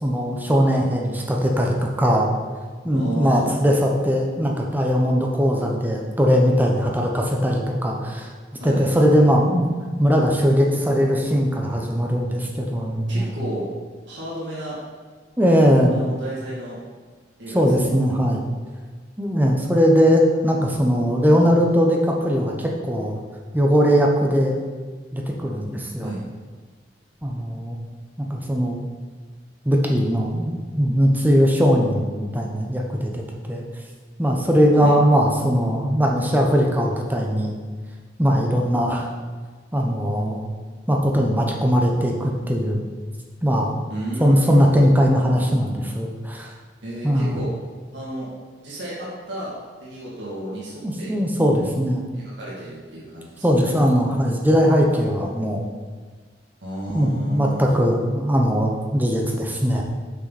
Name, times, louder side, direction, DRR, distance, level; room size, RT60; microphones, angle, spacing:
voice 1, 0.0-2.3 2.8-8.3 8.6-9.7 10.0-13.3 15.4-16.0 17.5-18.4 19.2-23.2 23.5-24.6 25.1-26.1 27.2-27.8 28.2-28.8 29.6-33.6 34.2-37.5 38.2-39.1 39.7-40.5 40.9-42.8 43.4-43.8 44.2-46.5 47.0-47.4 50.8-52.0 53.4-55.6 56.9-59.8, equal, 10° right, 0 dB, 1.0 m, -20 dB
voice 2, 2.9-3.5 8.6-8.9 13.1-13.7 14.1-14.8 15.9-16.8 17.4-17.9 26.0-26.2 34.7-35.0 43.9-44.9 46.8-47.5 47.9-48.3 48.6-51.2 52.1-53.4 56.6-57.6, right 1 dB, 85° right, -8 dB, 2.6 m, -32 dB
8.0 x 6.4 x 4.2 m, 1.4 s
head